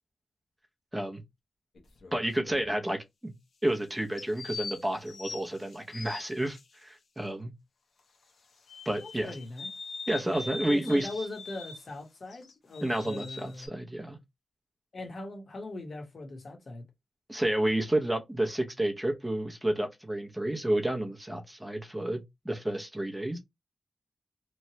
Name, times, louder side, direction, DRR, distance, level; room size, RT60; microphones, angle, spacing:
sound 1, 1.7-2.7 4.2-6.6 8.7-11.9 12.3-13.7, left 4 dB, 80° left, 0.8 m, -42 dB
voice 1, 2.1-3.3 3.6-7.5 8.9-9.3 10.1-11.1 12.8-14.2 17.3-23.4, right 1 dB, 5° right, 0.6 m, -30 dB
voice 2, 9.0-9.7 10.7-13.7 14.9-16.8, left 2 dB, 45° left, 1.0 m, -40 dB
3.0 x 2.2 x 2.7 m
wide cardioid pair, 160°, 0 cm